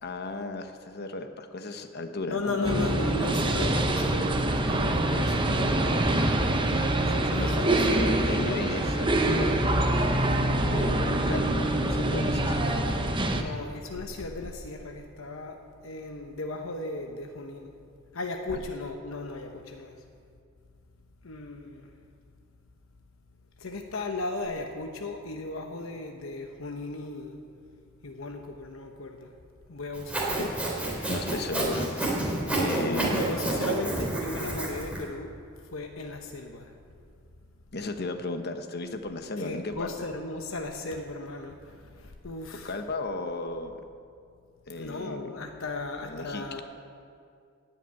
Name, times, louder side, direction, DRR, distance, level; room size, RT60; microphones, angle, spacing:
voice 1, 0.0-3.0 7.1-10.1 10.6-12.7 13.3-13.5 30.4-30.6 31.1-33.2 37.7-39.9 42.6-43.8 44.7-45.4 46.0-46.6, left 2 dB, 55° left, 7 dB, 1.0 m, -35 dB
voice 2, 2.3-6.5 7.3-8.3 13.3-17.7 18.1-20.0 21.2-21.9 23.6-27.4 28.0-29.3 29.7-30.4 32.8-35.3 35.6-36.7 39.4-42.8 44.7-46.6, left 2 dB, 85° left, 4 dB, 1.0 m, -36 dB
sound 1, 2.6-13.4, right 1 dB, 25° right, 0.9 m, -25 dB
Sawing, 29.9-35.0, right 2 dB, 5° right, 3.0 m, -29 dB
17.0 x 5.9 x 9.2 m, 2.3 s
head